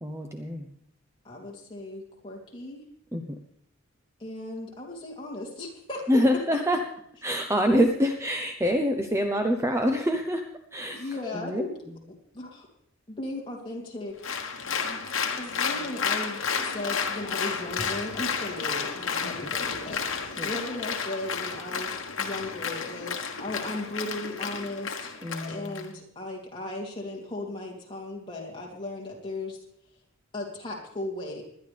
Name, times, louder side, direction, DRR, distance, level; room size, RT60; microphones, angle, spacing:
voice 1, 0.0-0.7 3.1-3.2 6.1-6.8 7.2-10.4 10.7-11.6 19.2-19.3 20.4-20.5 25.2-25.9, equal, 15° right, 4 dB, 0.8 m, -26 dB
voice 2, 1.2-2.8 4.2-6.0 10.9-11.8 12.3-12.7 13.1-14.3 14.8-21.9 22.2-25.1 25.5-29.6 30.3-31.4, left 2 dB, 25° left, -2 dB, 3.0 m, -36 dB
Applause, 14.2-25.9, left 6 dB, 70° left, 1.3 m, -31 dB
20.5 x 11.0 x 3.4 m, 0.70 s
head